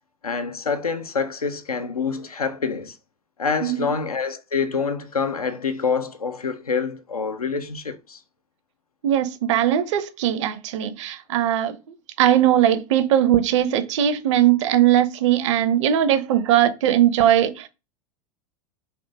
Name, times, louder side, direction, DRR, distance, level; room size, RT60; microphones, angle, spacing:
voice 1, 0.2-3.0 3.4-8.2, left 5 dB, 85° left, 0.4 m, -26 dB
voice 2, 3.6-3.9 9.0-11.8 12.2-17.7, right 11 dB, 55° right, 0.5 m, -19 dB
3.5 x 2.5 x 2.6 m
figure-of-eight pair, 85°, 19 cm